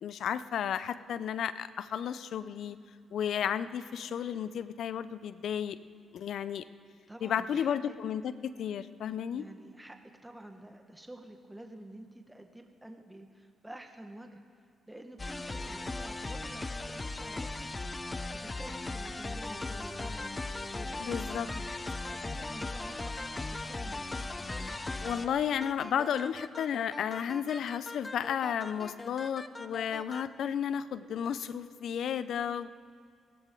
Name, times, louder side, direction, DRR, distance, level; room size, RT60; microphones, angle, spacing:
voice 1, 0.0-2.8 3.1-5.8 6.1-6.6 7.2-9.4 21.0-21.5 25.0-32.7, left 8 dB, 70° left, 15 dB, 0.5 m, -33 dB
voice 2, 7.1-7.9 9.3-17.8 18.3-21.6 22.0-24.8, right 1 dB, 10° right, 5 dB, 1.5 m, -49 dB
sound 1, 15.2-30.3, left 2 dB, 30° left, 0.9 m, -38 dB
17.0 x 14.0 x 3.9 m, 2.4 s
supercardioid pair, 55°, 0 cm